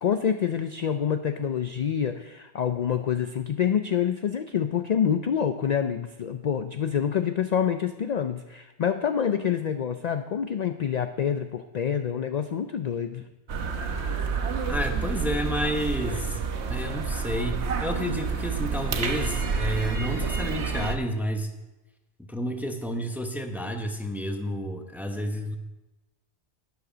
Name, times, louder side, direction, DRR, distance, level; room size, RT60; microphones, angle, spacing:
voice 1, 0.0-13.2, left 8 dB, 50° left, 8 dB, 0.5 m, -27 dB
sound 1, 13.5-21.0, right 5 dB, 85° right, 1.3 m, -29 dB
voice 2, 14.6-16.4 16.7-21.5 22.3-25.6, equal, ahead, 4 dB, 0.9 m, -30 dB
11.5 x 9.6 x 5.0 m, 1.0 s
omnidirectional pair, 1.1 m